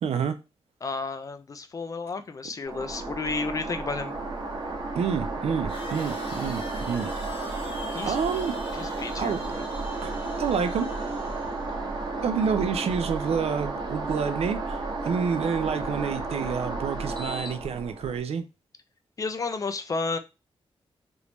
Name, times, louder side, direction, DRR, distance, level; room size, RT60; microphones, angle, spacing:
voice 1, 0.0-0.4 5.0-7.1 8.1-8.5 9.2-9.5 10.0-10.9 12.2-18.4, right 6 dB, 85° right, 0.4 m, -28 dB
voice 2, 0.8-4.1 7.9-8.2 8.8-9.6 19.2-20.2, left 4 dB, 35° left, 0.4 m, -32 dB
sound 1, 2.7-18.2, right 3 dB, 45° right, 0.9 m, -32 dB
sound 2, 5.7-11.8, left 2 dB, 60° left, 1.6 m, -45 dB
3.4 x 2.6 x 2.9 m
wide cardioid pair, 155°, 10 cm